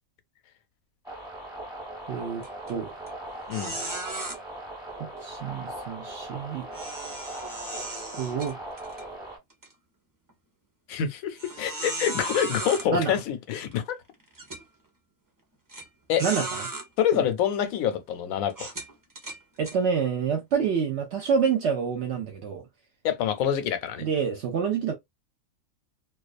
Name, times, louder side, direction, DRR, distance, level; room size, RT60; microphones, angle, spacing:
sound 1, 1.0-9.4, right 1 dB, 5° right, 0.8 m, -39 dB
voice 1, 2.1-2.9 5.0-6.7 8.1-8.6 12.9-13.2 16.2-16.7 17.1-17.3 19.6-22.7 24.0-24.9, right 6 dB, 65° right, 0.8 m, -27 dB
sound 2, 2.4-2.7 3.1-3.2 3.5-4.4 6.7-9.0 9.5-9.7 10.3-10.4 11.4-12.9 13.7-13.8 14.3-14.6 15.7-15.8 16.2-16.9 17.5-17.7 18.5-19.8, right 2 dB, 30° right, 0.4 m, -35 dB
voice 2, 10.9-14.0 16.1-16.2 17.0-18.7 23.0-24.0, left 9 dB, 90° left, 1.0 m, -26 dB
2.3 x 2.2 x 2.4 m
omnidirectional pair, 1.4 m